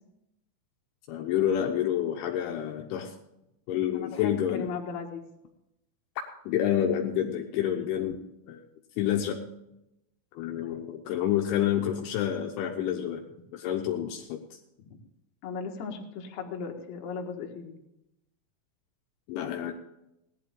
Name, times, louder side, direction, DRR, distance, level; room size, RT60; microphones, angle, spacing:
voice 1, 1.1-3.2 3.7-4.7 6.5-8.6 9.0-9.4 10.3-13.2 13.5-14.6 19.3-19.7, left 10 dB, 80° left, 2 dB, 3.2 m, -28 dB
voice 2, 4.1-5.3 8.0-8.2 10.6-10.8 15.4-17.8, left 5 dB, 60° left, 1 dB, 3.1 m, -37 dB
17.5 x 11.0 x 3.8 m, 0.86 s
omnidirectional pair, 5.6 m